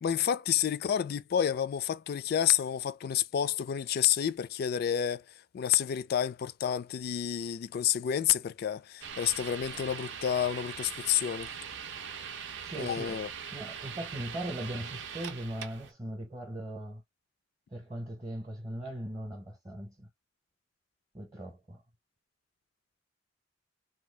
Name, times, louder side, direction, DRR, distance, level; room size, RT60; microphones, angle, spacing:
voice 1, 0.0-5.2 5.5-11.5 12.8-13.3, left 9 dB, 55° left, 0.3 m, -29 dB
sound 1, 9.0-15.9, right 7 dB, 70° right, 0.5 m, -41 dB
voice 2, 12.6-13.2 13.5-17.0 17.7-20.1 21.1-21.8, right 1 dB, 25° right, 0.7 m, -39 dB
2.7 x 2.3 x 3.2 m
head